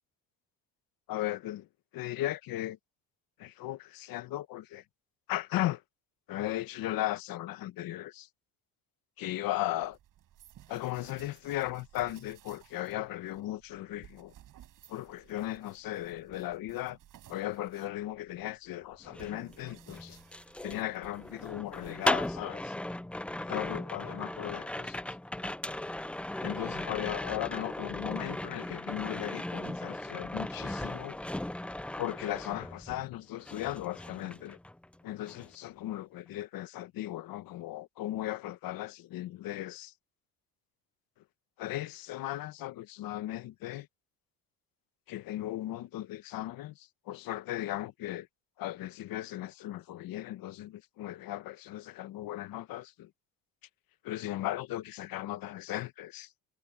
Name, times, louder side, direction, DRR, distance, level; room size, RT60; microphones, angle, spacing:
voice 1, 1.1-1.7 1.9-2.8 3.4-4.8 5.3-5.8 6.3-8.3 9.2-10.0 10.7-14.3 14.9-17.0 17.3-20.2 20.6-22.7 23.4-25.0 26.4-31.2 32.0-34.6 35.0-39.9 41.6-43.9 45.1-48.3 48.6-53.1 54.0-56.3, left 15 dB, 70° left, 1.2 m, -37 dB
sound 1, 9.8-22.6, right 12 dB, 60° right, 7.6 m, -58 dB
sound 2, 19.0-33.1 33.4-34.9 35.2-35.5, left 1 dB, 5° left, 0.4 m, -37 dB
cardioid pair, 130°, 36 cm